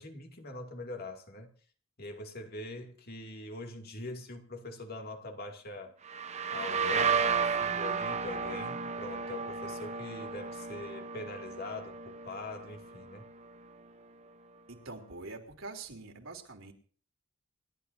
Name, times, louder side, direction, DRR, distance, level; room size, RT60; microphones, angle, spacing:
voice 1, 0.0-1.5 2.0-6.0 6.5-13.3, left 2 dB, 50° left, 2.3 m, -43 dB
sound 1, 6.1-13.6, right 6 dB, 35° right, 0.8 m, -33 dB
voice 2, 14.7-16.7, right 3 dB, 90° right, 3.0 m, -45 dB
28.5 x 11.5 x 2.7 m
head